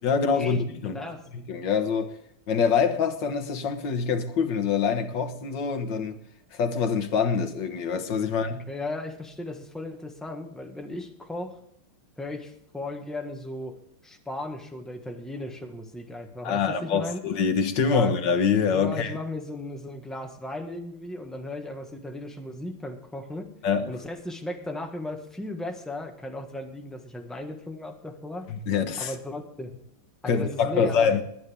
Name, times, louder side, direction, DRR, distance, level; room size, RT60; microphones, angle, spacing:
voice 1, 0.0-1.0 1.3-2.2 2.5-6.2 6.5-8.7 16.4-19.2 23.6-23.9 28.5-29.1 30.2-31.2, left 6 dB, 60° left, 1.7 m, -25 dB
voice 2, 8.7-11.6 12.2-13.8 14.0-17.2 17.8-18.1 18.7-23.5 23.9-28.5 29.0-29.7 30.2-31.2, left 2 dB, ahead, 0.9 m, -36 dB
22.0 x 9.3 x 3.5 m
omnidirectional pair, 2.4 m